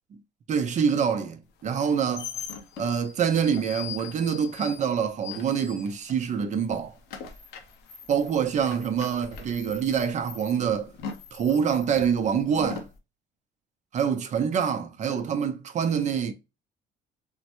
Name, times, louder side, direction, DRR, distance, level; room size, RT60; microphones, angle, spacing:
voice 1, 0.5-2.3 2.8-6.9 8.1-10.9 11.3-12.9 13.9-16.3, right 7 dB, 45° right, 0.6 m, -26 dB
sound 1, 1.7-6.3 6.6-13.0, left 7 dB, 90° left, 0.7 m, -41 dB
3.5 x 2.1 x 2.9 m
cardioid pair, 110°, 17 cm